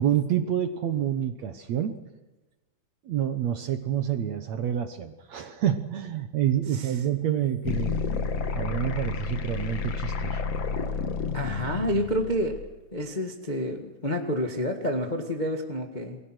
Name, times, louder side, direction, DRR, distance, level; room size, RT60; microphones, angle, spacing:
voice 1, 0.0-2.0 3.1-8.0 8.5-10.4, right 10 dB, 65° right, 8 dB, 1.9 m, -28 dB
sound 1, 7.6-12.7, left 5 dB, 50° left, 2.1 m, -30 dB
voice 2, 11.3-12.6 12.9-16.2, equal, 35° left, 3 dB, 0.6 m, -29 dB
29.0 x 21.5 x 6.3 m, 1.1 s
omnidirectional pair, 4.3 m